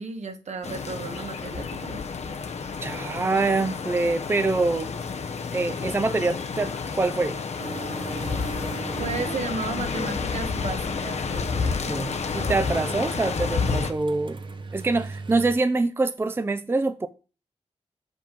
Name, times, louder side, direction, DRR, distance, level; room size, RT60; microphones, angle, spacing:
voice 1, 0.0-2.1 9.0-12.0, right 4 dB, 70° right, 1.5 m, -34 dB
sound 1, 0.6-13.9, left 5 dB, 65° left, 0.9 m, -30 dB
voice 2, 2.8-4.9 5.5-7.4 11.6-14.4 14.7-17.1, right 3 dB, 20° right, 0.5 m, -25 dB
sound 2, 7.6-15.6, right 3 dB, 45° right, 0.9 m, -39 dB
7.3 x 5.3 x 5.2 m
wide cardioid pair, 120°, 12 cm